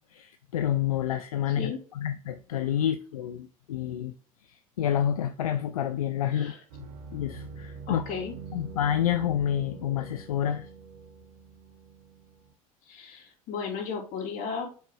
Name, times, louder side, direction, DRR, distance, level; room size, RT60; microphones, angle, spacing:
voice 1, 0.1-4.1 4.8-6.5 6.8-8.0 8.5-10.7, left 10 dB, 80° left, 0.5 m, -29 dB
voice 2, 1.5-1.8 6.3-6.6 7.9-8.3 12.8-14.7, left 6 dB, 50° left, 3.1 m, -35 dB
sound 1, 6.7-12.5, right 5 dB, 65° right, 1.5 m, -44 dB
7.4 x 5.6 x 2.3 m
hypercardioid pair, 75°, 18 cm